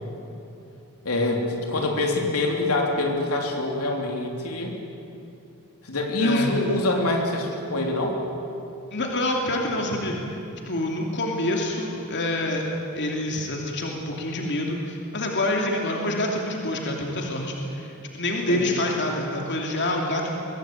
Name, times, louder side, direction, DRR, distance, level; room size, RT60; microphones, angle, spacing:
voice 1, 1.0-4.7 5.8-8.2 18.5-18.7, left 2 dB, 85° left, 1 dB, 3.4 m, -25 dB
voice 2, 6.2-6.6 8.9-10.4 10.6-12.6 12.9-20.3, left 1 dB, 55° left, 0 dB, 2.9 m, -27 dB
23.5 x 18.5 x 9.1 m, 2.8 s
head